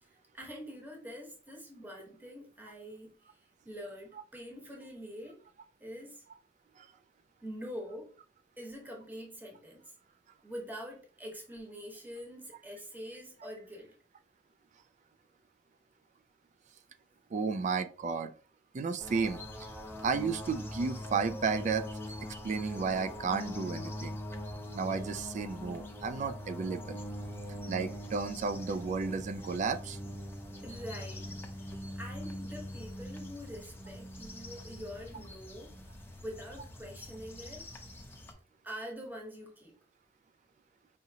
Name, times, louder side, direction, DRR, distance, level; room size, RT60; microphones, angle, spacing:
voice 1, 0.0-5.4 5.8-6.2 7.4-8.1 8.6-9.9 10.4-13.9 27.2-27.4 30.6-35.7 36.2-37.7 38.6-39.7, equal, 10° right, 1.0 m, -45 dB
voice 2, 17.3-18.3 18.7-19.4 20.0-21.9 22.2-24.2 24.7-27.0 27.7-30.0, right 5 dB, 40° right, 0.3 m, -33 dB
sound 1, 19.0-38.3, left 1 dB, 10° left, 0.6 m, -43 dB
4.9 x 2.9 x 2.7 m
head